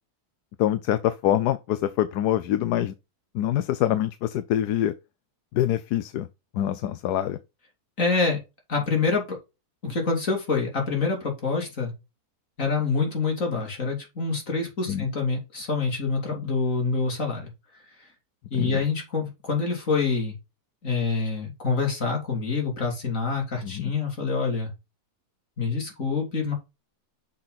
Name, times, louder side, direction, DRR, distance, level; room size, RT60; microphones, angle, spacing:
voice 1, 0.6-2.9 3.3-4.9 5.5-6.3 6.5-7.4 14.9-15.1 18.5-18.8 23.6-23.9, left 12 dB, 85° left, 1.2 m, -25 dB
voice 2, 8.0-8.4 8.7-9.4 9.8-11.9 12.6-17.5 18.5-20.4 20.8-24.7 25.6-26.5, left 4 dB, 55° left, 3.3 m, -26 dB
6.5 x 5.6 x 4.0 m
omnidirectional pair, 1.7 m